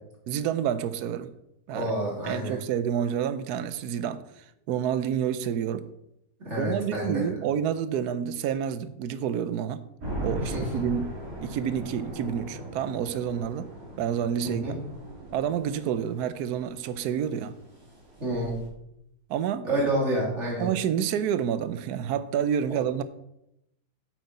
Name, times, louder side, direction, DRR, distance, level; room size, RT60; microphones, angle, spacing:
voice 1, 0.3-1.3 1.7-1.9 2.2-5.9 6.6-9.8 10.2-11.1 11.4-13.7 14.0-14.6 15.3-17.5 19.3-19.7 20.6-23.0, right 9 dB, 80° right, 1.2 m, -29 dB
voice 2, 1.7-2.6 6.4-7.3 10.4-10.6 14.4-14.7 18.2-18.6 19.6-20.7 22.7-22.8, right 1 dB, 45° right, 3.5 m, -28 dB
sound 1, 10.0-18.7, equal, 60° right, 3.3 m, -39 dB
9.2 x 8.0 x 4.2 m
omnidirectional pair, 1.7 m